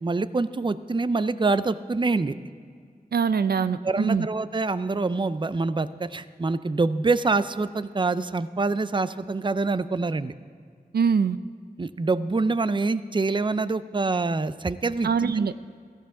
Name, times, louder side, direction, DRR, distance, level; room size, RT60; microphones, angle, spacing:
voice 1, 0.0-2.4 3.8-10.3 11.8-15.3, right 3 dB, 30° right, 14 dB, 0.5 m, -25 dB
voice 2, 3.1-4.3 10.9-11.4 15.0-15.5, right 6 dB, 80° right, 13 dB, 0.4 m, -23 dB
16.0 x 14.5 x 3.7 m, 2.1 s
wide cardioid pair, 55°, 16 cm